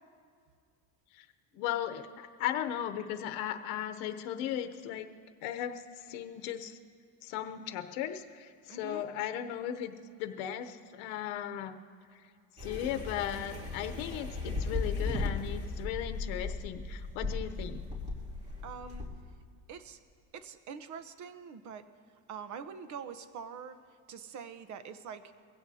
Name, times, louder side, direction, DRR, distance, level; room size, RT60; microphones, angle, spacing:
voice 1, 1.5-5.1 5.4-6.8 7.2-9.9 10.2-11.8 12.6-17.8, left 10 dB, 90° left, 8 dB, 0.8 m, -36 dB
voice 2, 8.7-9.0 18.6-19.1 19.7-20.0 20.3-21.9 22.3-23.8 24.1-25.3, right 6 dB, 50° right, 11 dB, 0.9 m, -44 dB
sound 1, 12.6-19.1, left 3 dB, 15° right, 2.8 m, -36 dB
23.0 x 16.5 x 2.8 m, 2.2 s
cardioid pair, 125°, 38 cm